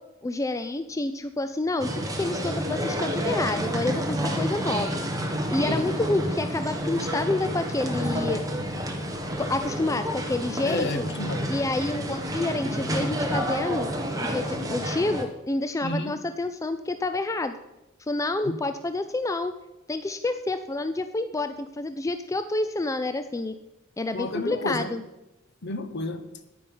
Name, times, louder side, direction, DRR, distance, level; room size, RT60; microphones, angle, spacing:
voice 1, 0.2-4.9 5.5-8.4 9.4-11.0 11.5-13.9 14.2-17.6 18.1-19.5 19.9-23.5 24.0-25.0, left 2 dB, 15° left, 10 dB, 0.4 m, -28 dB
sound 1, 1.8-15.2, equal, 20° right, 1.3 m, -29 dB
voice 2, 10.6-11.5 15.8-16.2 18.4-18.6 24.1-24.9 25.6-26.3, left 2 dB, 60° left, 10 dB, 0.9 m, -31 dB
9.8 x 9.3 x 5.4 m, 0.96 s
head